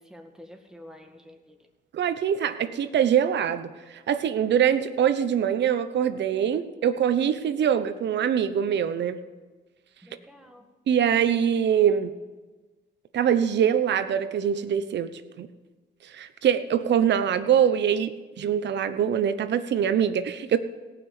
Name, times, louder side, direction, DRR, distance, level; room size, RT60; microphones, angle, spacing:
voice 1, 0.0-1.6 10.0-10.6, left 1 dB, 5° right, 3 dB, 1.8 m, -48 dB
voice 2, 1.9-3.7 4.1-9.2 10.9-12.1 13.1-15.5 16.1-20.6, right 8 dB, 60° right, 11 dB, 0.9 m, -23 dB
18.0 x 6.0 x 7.0 m, 1.3 s
cardioid pair, 90°, 20 cm